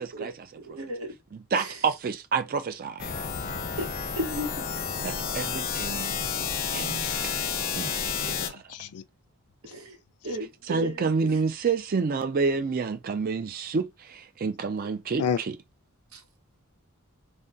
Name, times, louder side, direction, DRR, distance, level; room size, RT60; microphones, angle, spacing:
voice 1, 0.1-1.1 1.5-1.8 3.8-3.9 4.1-5.1 9.6-10.0 10.2-11.3 16.1-16.2, equal, 70° right, 1.0 m, -35 dB
voice 2, 1.5-3.1 5.0-7.1 7.8-7.9 8.2-8.6 10.7-15.2, right 5 dB, 40° right, 0.4 m, -29 dB
sound 1, 3.0-8.5, left 6 dB, 40° left, 0.6 m, -30 dB
voice 3, 8.0-9.0 9.7-9.8 15.2-15.4, left 7 dB, 90° left, 0.4 m, -32 dB
3.6 x 2.2 x 2.6 m
head